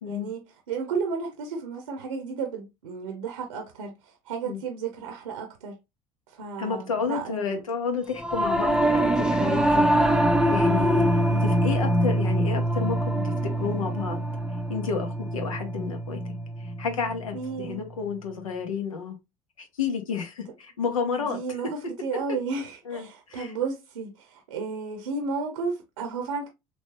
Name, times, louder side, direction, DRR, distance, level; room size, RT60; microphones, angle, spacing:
voice 1, 0.1-5.7 6.3-7.6 17.3-17.8 21.2-26.5, right 5 dB, 80° right, 0.7 m, -33 dB
voice 2, 6.6-9.9 10.5-13.3 13.6-14.3 14.7-16.3 16.8-19.2 19.6-21.4 22.9-23.5, left 6 dB, 80° left, 0.8 m, -31 dB
Singing / Musical instrument, 8.2-17.7, right 1 dB, 5° right, 0.5 m, -24 dB
3.1 x 3.0 x 2.9 m
figure-of-eight pair, 60°, 17 cm